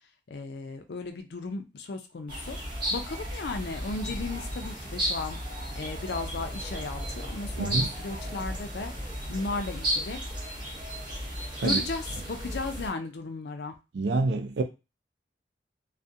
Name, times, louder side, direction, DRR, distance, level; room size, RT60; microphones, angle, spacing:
voice 1, 0.3-2.6 2.9-5.4 5.8-10.2 11.6-13.7, left 3 dB, 65° left, 0.4 m, -35 dB
sound 1, 2.3-12.9, equal, 25° right, 0.7 m, -34 dB
voice 2, 7.6-7.9 11.6-11.8 13.9-14.6, right 3 dB, 70° right, 0.4 m, -27 dB
2.4 x 2.1 x 2.6 m
head